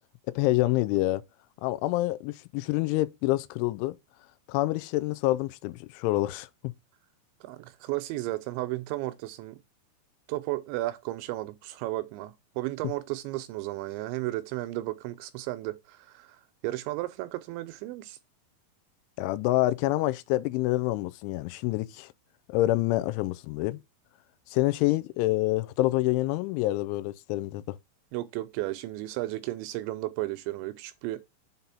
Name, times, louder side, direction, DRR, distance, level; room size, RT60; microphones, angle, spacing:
voice 1, 0.4-1.2 1.6-4.0 4.5-6.7 19.2-22.1 22.5-23.8 24.5-27.8, left 17 dB, 90° left, 3.1 m, -27 dB
voice 2, 7.4-9.6 10.3-18.2 28.1-31.2, right 17 dB, 85° right, 2.8 m, -34 dB
7.4 x 3.9 x 5.5 m
omnidirectional pair, 5.3 m